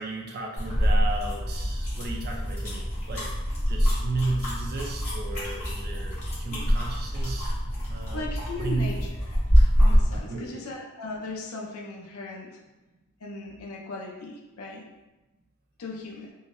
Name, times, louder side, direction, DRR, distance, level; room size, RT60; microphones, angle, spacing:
voice 1, 0.0-3.3 3.7-8.2 8.6-9.0 10.3-10.6, right 3 dB, 45° right, 1 dB, 0.5 m, -34 dB
sound 1, 0.6-10.2, equal, 30° left, 1.2 m, -25 dB
voice 2, 8.1-9.4 9.8-12.6 13.2-14.8 15.8-16.3, left 2 dB, 80° left, -1 dB, 0.5 m, -38 dB
3.8 x 2.0 x 2.5 m, 1.1 s
head